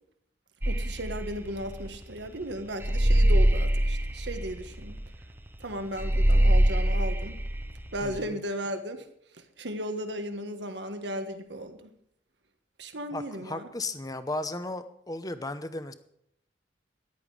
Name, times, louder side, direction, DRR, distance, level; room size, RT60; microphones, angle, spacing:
sound 1, 0.6-8.2, right 1 dB, 10° right, 0.9 m, -24 dB
voice 1, 0.6-5.0 5.6-7.3 7.9-9.1 9.6-11.9 12.8-13.7, right 1 dB, 80° right, 7 dB, 1.5 m, -35 dB
voice 2, 8.0-8.4 13.1-15.9, left 2 dB, 20° left, 11 dB, 0.8 m, -35 dB
14.0 x 11.0 x 5.0 m, 0.73 s
head